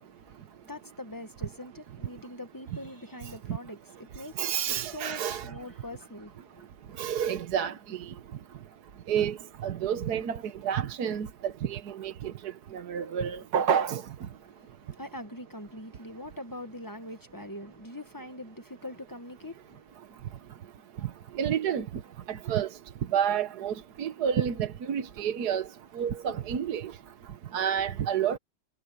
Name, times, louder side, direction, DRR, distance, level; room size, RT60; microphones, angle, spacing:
voice 1, 0.0-4.5 4.9-6.6 14.4-20.0, left 1 dB, 15° left, 1.0 m, -43 dB
voice 2, 4.4-5.5 7.0-8.0 9.1-9.4 9.6-12.3 12.7-14.0 21.3-21.8 22.3-22.7 23.1-25.7 26.0-26.9 27.5-28.4, right 8 dB, 55° right, 1.4 m, -29 dB
omnidirectional pair, 2.3 m